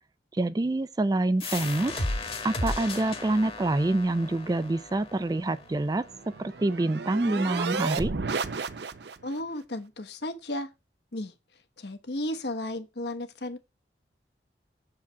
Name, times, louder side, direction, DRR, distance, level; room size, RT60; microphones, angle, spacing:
voice 1, 0.3-2.0 2.4-6.1 6.4-8.1, right 2 dB, 20° right, 0.3 m, -26 dB
sound 1, 1.4-6.8, left 2 dB, 30° left, 1.2 m, -35 dB
sound 2, 5.8-9.4, right 4 dB, 70° right, 0.6 m, -33 dB
voice 2, 9.2-10.7 11.1-11.3 11.8-13.6, left 1 dB, 65° left, 1.1 m, -34 dB
7.2 x 4.9 x 5.6 m
head